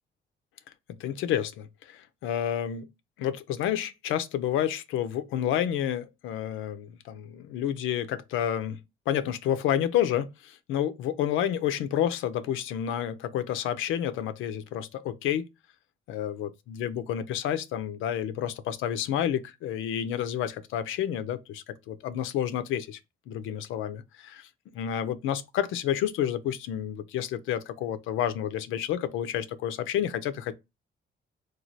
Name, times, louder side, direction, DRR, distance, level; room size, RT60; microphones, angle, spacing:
voice 1, 1.0-2.9 3.2-8.8 9.1-15.4 16.1-23.0 23.3-30.5, left 10 dB, 85° left, 0.4 m, -30 dB
3.1 x 2.3 x 2.6 m
cardioid pair, 90°, 20 cm